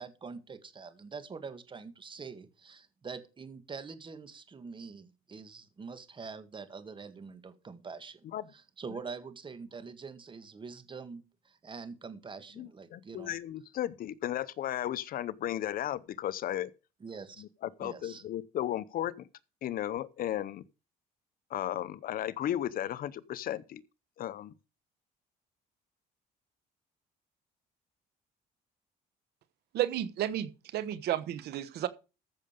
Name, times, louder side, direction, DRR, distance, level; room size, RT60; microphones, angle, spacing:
voice 1, 0.0-8.3 8.5-13.3 17.0-17.4 17.8-18.2, right 5 dB, 30° right, 1.9 m, -45 dB
voice 2, 12.6-16.7 17.4-19.1 19.6-20.6 21.5-23.8 24.2-24.5, left 12 dB, 60° left, 0.7 m, -35 dB
voice 3, 29.7-31.9, right 12 dB, 75° right, 1.1 m, -32 dB
14.5 x 6.6 x 5.2 m
cardioid pair, 110°, 17 cm